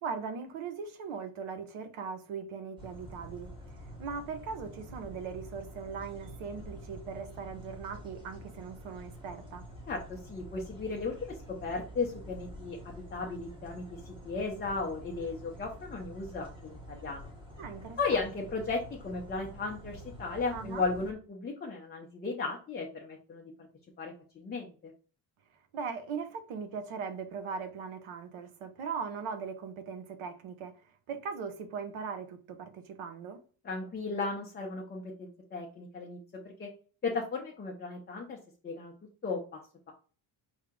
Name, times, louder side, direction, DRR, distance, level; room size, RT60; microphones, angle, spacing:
voice 1, 0.0-3.5 3.8-9.6 17.6-18.0 20.5-20.8 25.7-30.8 31.1-33.4, right 5 dB, 85° right, 0.9 m, -39 dB
sound 1, 2.8-21.1, equal, 10° right, 0.9 m, -48 dB
voice 2, 9.9-17.3 18.0-23.5 24.0-24.9 33.6-36.7 37.0-38.4 38.6-38.9 39.2-39.6, left 4 dB, 20° left, 0.5 m, -35 dB
4.9 x 2.8 x 3.6 m
cardioid pair, 170°, 49 cm